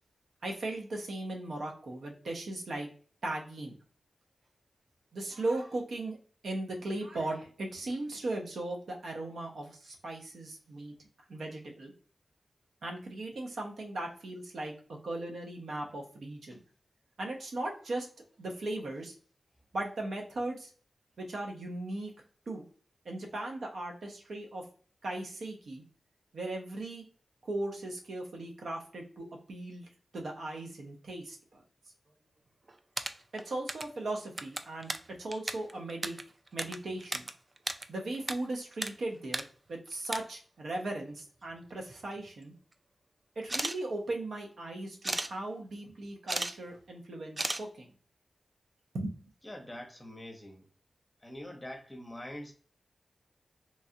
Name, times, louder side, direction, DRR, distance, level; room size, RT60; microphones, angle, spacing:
voice 1, 0.4-2.9 3.2-3.8 5.1-6.2 6.4-10.9 11.3-11.9 12.8-16.6 17.2-18.1 18.4-19.2 19.7-20.7 21.2-22.1 22.5-22.6 23.0-24.6 25.0-25.8 26.3-27.0 27.4-31.6 33.3-34.9 35.2-36.2 36.5-37.3 37.9-39.4 39.7-42.5 43.4-47.9 48.9-49.1, right 2 dB, 80° right, 0.8 m, -38 dB
sound 1, 32.7-34.0 34.3-37.3 37.6-38.4 38.6-38.9 39.2-39.4 39.9-40.2 41.2-41.3 41.6-42.3 43.4-43.8 45.0-45.3 46.0-46.5 46.8-46.9 47.4-47.6, right 2 dB, 35° right, 0.3 m, -34 dB
voice 2, 49.4-50.7 51.2-52.5, left 1 dB, 15° left, 0.8 m, -44 dB
3.1 x 2.4 x 2.7 m
cardioid pair, 60°, 0 cm